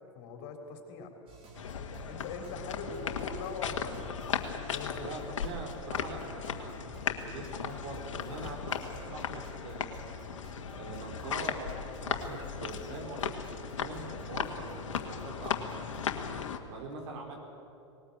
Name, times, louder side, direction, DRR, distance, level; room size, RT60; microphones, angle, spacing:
voice 1, 0.1-1.1 2.1-5.2, left 4 dB, 50° left, 4 dB, 3.7 m, -42 dB
sound 1, 1.3-16.1, right 4 dB, 35° right, 4.7 m, -51 dB
sound 2, 1.5-16.6, left 7 dB, 75° left, 1.7 m, -37 dB
voice 2, 5.0-6.8 7.2-9.9 10.7-15.6 16.7-17.4, right 2 dB, 60° right, 1 dB, 4.9 m, -43 dB
20.0 x 19.0 x 8.7 m, 2.9 s
hypercardioid pair, 100°, 16 cm